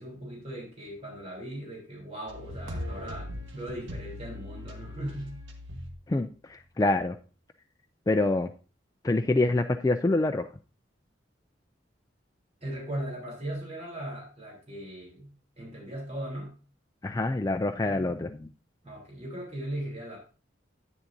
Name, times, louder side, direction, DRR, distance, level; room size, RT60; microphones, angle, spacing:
voice 1, 0.0-3.3 3.5-5.4 12.6-16.6 18.8-20.2, right 1 dB, 35° right, -2 dB, 3.4 m, -38 dB
sound 1, 2.3-6.0 6.5-6.6, left 1 dB, 85° right, 1.4 m, -40 dB
voice 2, 6.1-7.2 8.1-8.5 9.0-10.5 17.0-18.5, left 2 dB, 20° left, 6 dB, 0.3 m, -26 dB
9.8 x 9.0 x 2.7 m, 0.36 s
head